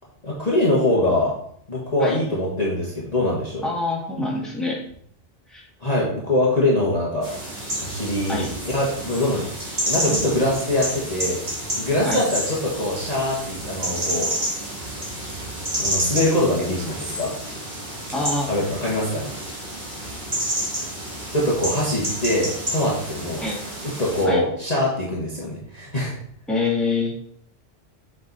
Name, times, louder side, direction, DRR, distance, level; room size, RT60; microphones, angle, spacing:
voice 1, 0.2-1.3 1.7-3.6 5.8-7.3 7.8-11.4 11.8-14.3 15.8-17.3 18.5-19.4 21.3-23.4 23.8-26.1, left 1 dB, 35° left, -5 dB, 1.5 m, -23 dB
voice 2, 3.6-4.8 5.5-5.6 8.3-8.5 12.0-12.2 18.1-18.5 23.4-23.6 24.3-24.4 26.5-27.3, left 3 dB, ahead, -4 dB, 2.0 m, -25 dB
sound 1, 7.2-24.2, right 1 dB, 40° right, 2.2 m, -29 dB
7.2 x 5.2 x 4.0 m, 0.64 s
omnidirectional pair, 1.2 m